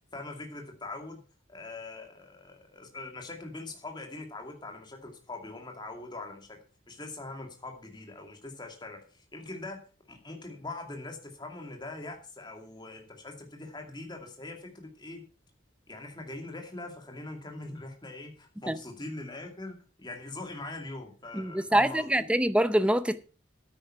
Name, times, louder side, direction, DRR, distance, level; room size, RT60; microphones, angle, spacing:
voice 1, 0.1-1.2 1.5-6.6 6.9-9.8 10.1-15.2 15.9-22.3, left 2 dB, 20° left, 2.5 m, -42 dB
voice 2, 21.3-23.3, right 1 dB, 5° right, 0.6 m, -25 dB
9.5 x 9.1 x 5.8 m
head